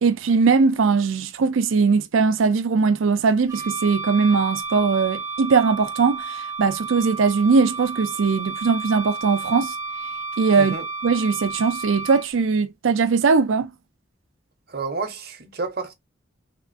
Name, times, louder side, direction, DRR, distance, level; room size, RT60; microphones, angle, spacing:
voice 1, 0.0-9.7 10.4-10.7 11.0-13.7, right 5 dB, 70° right, 0.5 m, -20 dB
Wind instrument woodwind instrument, 3.5-12.3, right 4 dB, 15° right, 0.4 m, -32 dB
voice 2, 14.7-15.9, right 3 dB, 50° right, 0.8 m, -30 dB
3.4 x 2.4 x 2.5 m
head